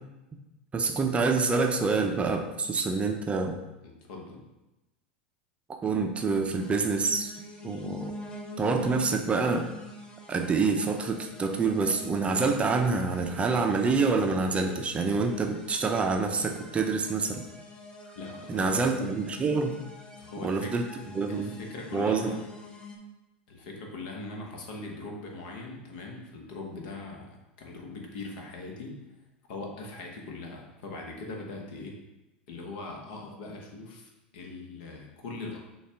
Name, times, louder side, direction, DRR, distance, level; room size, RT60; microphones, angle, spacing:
voice 1, 0.7-3.6 5.8-7.3 7.6-8.1 8.6-9.7 10.3-17.4 18.5-19.8 20.4-20.9 21.1-21.5 21.9-22.3, right 4 dB, 20° right, 4 dB, 0.5 m, -27 dB
voice 2, 3.8-4.4 18.1-18.8 20.2-20.8 21.3-22.4 23.5-29.0 29.5-32.0 32.5-35.6, left 3 dB, 65° left, 1 dB, 1.0 m, -41 dB
sound 1, 6.6-23.0, left 2 dB, 15° left, 0.7 m, -45 dB
6.3 x 2.4 x 3.4 m, 1.0 s
hypercardioid pair, 90°, 5 cm